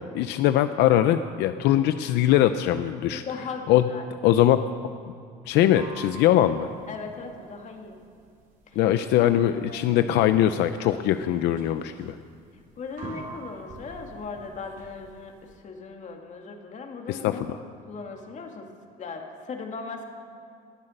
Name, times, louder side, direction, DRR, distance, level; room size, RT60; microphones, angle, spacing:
voice 1, 0.1-3.2 3.7-3.9 4.2-4.6 5.5-6.7 8.8-12.1 17.1-17.6, left 12 dB, 90° left, 10 dB, 0.6 m, -21 dB
voice 2, 3.1-4.0 6.9-8.0 9.2-9.3 9.7-10.1 12.8-17.4 17.8-18.7 19.0-20.0, left 4 dB, 45° left, 3 dB, 2.4 m, -38 dB
sound 1, 5.5-15.6, right 2 dB, 50° right, 3.9 m, -45 dB
20.0 x 11.0 x 6.6 m, 2.4 s
cardioid pair, 110°, 17 cm